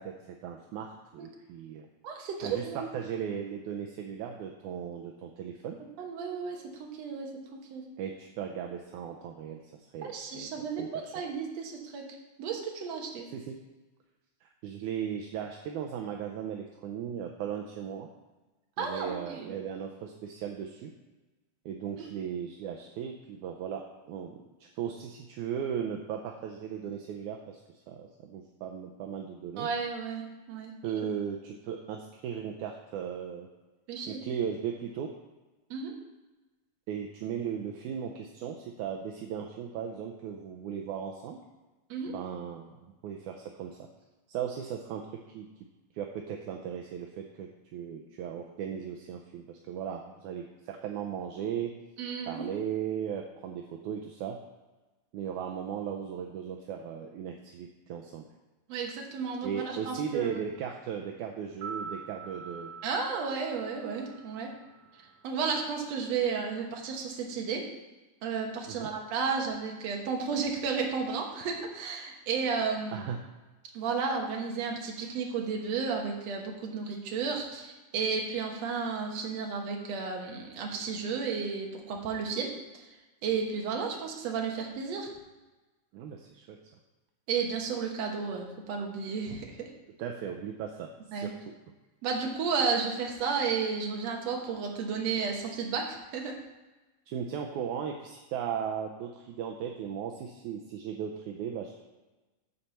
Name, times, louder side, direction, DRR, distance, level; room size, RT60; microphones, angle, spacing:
voice 1, 0.0-1.9 2.4-5.8 8.0-10.5 10.8-11.1 13.3-13.6 14.4-18.1 18.8-20.9 21.7-27.6 27.9-29.7 30.8-33.5 34.1-35.1 36.9-41.4 42.1-43.8 44.3-45.7 45.9-51.7 52.3-54.4 55.1-58.3 59.4-62.7 68.7-68.9 72.9-73.2 85.9-86.6 90.0-91.5 97.1-101.8, right 8 dB, 75° right, 2 dB, 2.0 m, -37 dB
voice 2, 2.0-2.9 6.0-7.9 10.0-12.1 12.4-13.3 18.8-19.5 29.6-30.7 33.9-34.2 35.7-35.9 41.9-42.1 52.0-52.5 58.7-60.4 62.8-64.5 65.2-67.6 68.2-73.0 73.7-82.5 83.2-85.1 87.3-89.7 91.1-91.3 92.0-96.3, right 5 dB, 60° right, 1 dB, 2.2 m, -33 dB
sound 1, 61.5-65.6 65.9-66.0, right 5 dB, 45° right, 1.9 m, -45 dB
9.6 x 4.3 x 6.8 m, 1.1 s
omnidirectional pair, 3.6 m